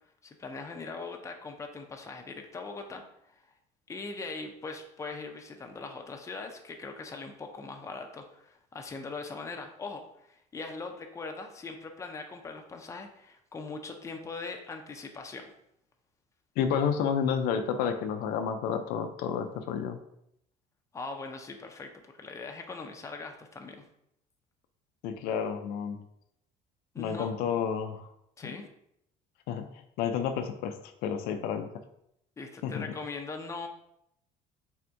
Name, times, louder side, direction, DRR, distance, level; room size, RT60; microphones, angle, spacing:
voice 1, 0.2-3.4 3.9-15.4 20.9-23.8 26.9-27.3 28.4-28.7 32.4-33.7, left 3 dB, 20° left, 3 dB, 0.5 m, -41 dB
voice 2, 16.6-20.0 25.0-26.0 27.0-28.1 29.5-29.7 30.0-30.8 31.0-31.7 32.6-32.8, left 7 dB, 75° left, 7 dB, 0.4 m, -30 dB
3.5 x 2.5 x 4.4 m, 0.76 s
cardioid pair, 110°, 16 cm